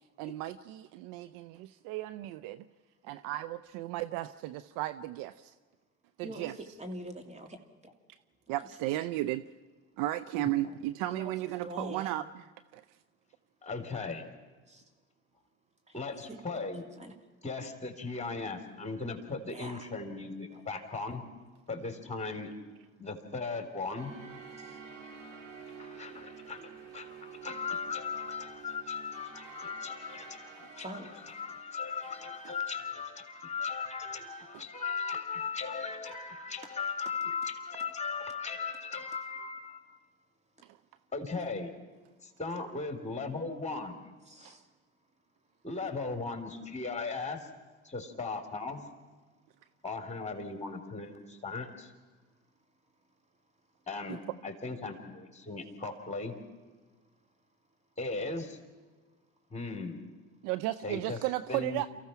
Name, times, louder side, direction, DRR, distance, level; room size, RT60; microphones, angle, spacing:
voice 1, 0.2-2.6 3.0-5.5 6.2-6.5 8.5-9.4 10.0-12.3 12.7-12.8 29.7-29.8 44.4-44.5 60.4-61.9, right 15 dB, 65° right, 14 dB, 0.7 m, -34 dB
voice 2, 6.2-7.9 10.6-10.8 11.0-11.3 11.6-12.1 14.7-14.8 15.9-16.0 16.3-16.4 17.0-17.1 19.5-19.9 20.5-20.6 24.6-24.8 30.7-31.1 44.3-44.7 55.5-55.6, equal, 20° right, 5 dB, 2.7 m, -44 dB
voice 3, 13.6-14.2 15.9-16.8 17.4-21.2 21.7-22.5 23.0-24.1 25.8-40.0 41.1-41.7 42.2-44.0 45.6-47.5 47.8-48.8 49.8-51.9 53.9-56.3 58.0-58.6 59.5-60.1 60.8-61.2 61.5-61.8, left 4 dB, 20° left, 6 dB, 3.9 m, -37 dB
sound 1, 24.0-32.8, right 6 dB, 85° right, 2.3 m, -50 dB
29.0 x 15.5 x 5.9 m, 1.4 s
hypercardioid pair, 60°, 36 cm